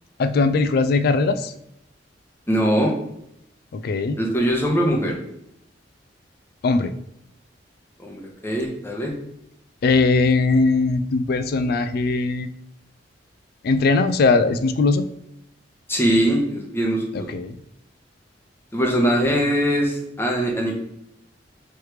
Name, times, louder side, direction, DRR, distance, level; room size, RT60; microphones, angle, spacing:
voice 1, 0.2-1.5 3.7-4.2 6.6-6.9 9.8-12.5 13.6-15.0 17.1-17.6, left 3 dB, 55° left, 12 dB, 0.3 m, -20 dB
voice 2, 2.5-2.9 4.2-5.2 8.0-9.1 15.9-17.3 18.7-20.7, equal, 10° left, 0 dB, 0.8 m, -21 dB
3.2 x 3.1 x 4.8 m, 0.79 s
head